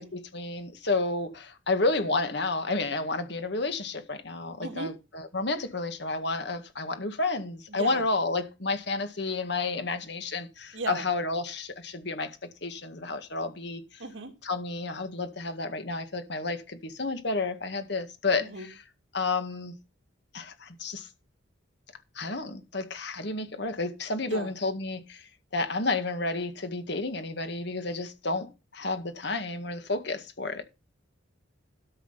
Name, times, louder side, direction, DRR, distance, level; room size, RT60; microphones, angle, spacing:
voice 1, 0.0-12.3 12.6-14.0 14.4-18.7 19.1-19.7 20.3-21.1 22.2-30.6, left 3 dB, 60° left, 1.9 m, -31 dB
voice 2, 4.6-4.9 7.7-8.0 10.7-11.0 14.0-14.3 18.4-18.7 24.3-24.5, right 2 dB, 75° right, 2.7 m, -36 dB
13.0 x 6.0 x 5.7 m
head